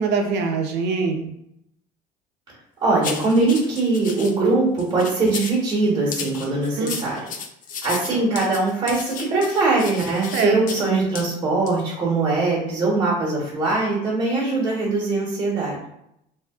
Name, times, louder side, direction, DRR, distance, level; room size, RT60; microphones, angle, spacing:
voice 1, 0.0-1.3 6.8-7.0 10.3-10.8, right 4 dB, 65° right, 4 dB, 0.5 m, -24 dB
voice 2, 2.8-7.2 7.8-15.8, right 3 dB, 25° right, -5 dB, 1.0 m, -21 dB
sound 1, 3.0-4.3 4.8-5.6 6.1-10.8 11.2-11.3 11.7-11.8, left 6 dB, 45° left, 0.4 m, -34 dB
2.7 x 2.3 x 2.3 m, 0.78 s
supercardioid pair, 100°, 19 cm